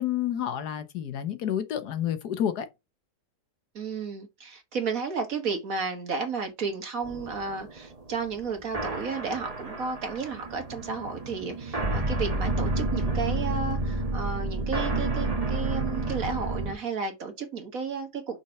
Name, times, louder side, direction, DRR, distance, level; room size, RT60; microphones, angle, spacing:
voice 1, 0.0-2.7, left 10 dB, 75° left, 1.4 m, -29 dB
voice 2, 3.8-18.4, right 5 dB, 60° right, 1.9 m, -33 dB
sound 1, 7.0-16.7, right 2 dB, 25° right, 1.3 m, -30 dB
5.8 x 4.4 x 5.8 m
omnidirectional pair, 1.7 m